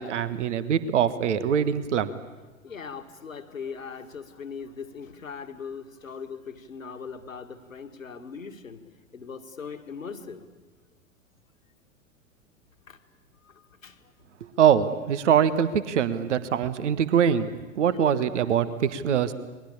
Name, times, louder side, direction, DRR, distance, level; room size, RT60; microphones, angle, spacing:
voice 1, 0.0-2.1 14.6-17.5 17.7-19.3, right 8 dB, 60° right, 14 dB, 1.5 m, -23 dB
voice 2, 2.6-8.8 9.1-10.5 12.9-13.0 13.5-13.6 13.8-14.0 17.8-18.5 19.1-19.2, left 6 dB, 75° left, 7 dB, 2.2 m, -40 dB
29.5 x 22.5 x 8.6 m, 1.2 s
figure-of-eight pair, 95°, 40 cm